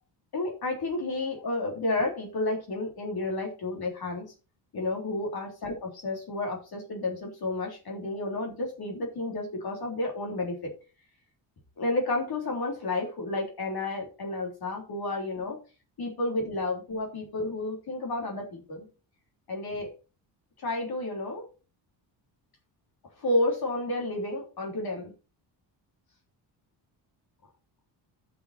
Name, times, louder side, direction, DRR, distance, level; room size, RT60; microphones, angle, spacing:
voice 1, 0.3-4.3 4.7-10.7 11.8-15.6 16.0-18.9 19.5-19.9 20.6-21.5 23.2-25.1, left 2 dB, 50° left, 0 dB, 3.6 m, -31 dB
11.5 x 6.2 x 4.3 m, 0.33 s
cardioid pair, 95°, 46 cm